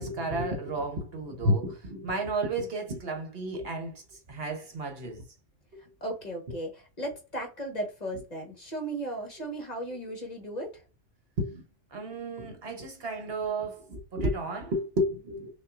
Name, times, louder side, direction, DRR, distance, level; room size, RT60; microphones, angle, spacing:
voice 1, 0.0-4.0 4.3-5.2 11.4-11.6 11.9-15.5, right 1 dB, 55° right, 1.1 m, -31 dB
voice 2, 6.0-10.8, right 1 dB, 35° left, 1.3 m, -36 dB
5.6 x 2.5 x 2.4 m
omnidirectional pair, 1.2 m